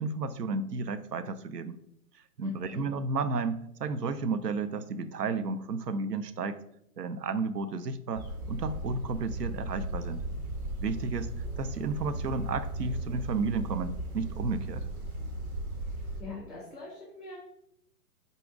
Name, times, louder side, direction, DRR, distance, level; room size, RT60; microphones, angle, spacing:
voice 1, 0.0-1.8 2.4-6.6 7.0-10.2 10.8-14.9, right 4 dB, 85° right, 12 dB, 0.6 m, -32 dB
voice 2, 2.4-2.8 16.2-17.4, left 3 dB, ahead, -8 dB, 0.4 m, -43 dB
sound 1, 8.1-16.2, right 1 dB, 65° right, 1.3 m, -36 dB
4.1 x 2.7 x 4.8 m, 0.75 s
figure-of-eight pair, 130°, 47 cm